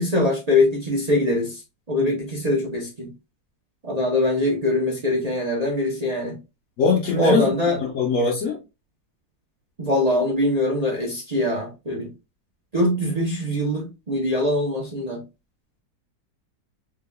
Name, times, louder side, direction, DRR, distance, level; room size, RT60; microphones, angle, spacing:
voice 1, 0.0-1.6 1.9-3.1 3.8-6.4 7.2-7.8 9.8-12.1 12.7-15.2, left 1 dB, 45° right, 0.5 m, -23 dB
voice 2, 6.8-8.6, left 4 dB, 55° left, 1.1 m, -22 dB
3.9 x 3.4 x 2.2 m
omnidirectional pair, 1.9 m